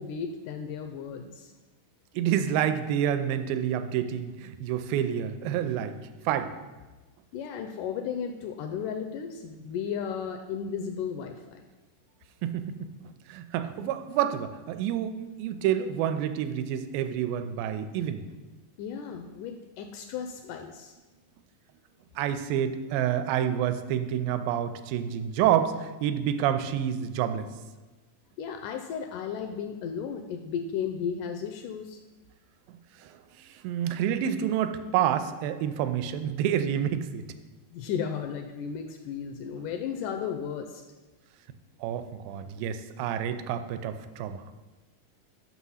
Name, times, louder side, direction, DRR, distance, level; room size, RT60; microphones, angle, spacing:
voice 1, 0.0-1.5 7.3-11.6 18.8-21.0 28.4-32.0 37.7-40.8, left 7 dB, 80° left, 5 dB, 1.9 m, -34 dB
voice 2, 2.1-6.0 6.3-6.5 12.4-12.9 13.3-18.2 22.2-27.5 33.0-37.3 41.8-44.4, right 10 dB, 90° right, 10 dB, 2.3 m, -28 dB
6.1 x 6.0 x 5.5 m, 1.2 s
omnidirectional pair, 4.0 m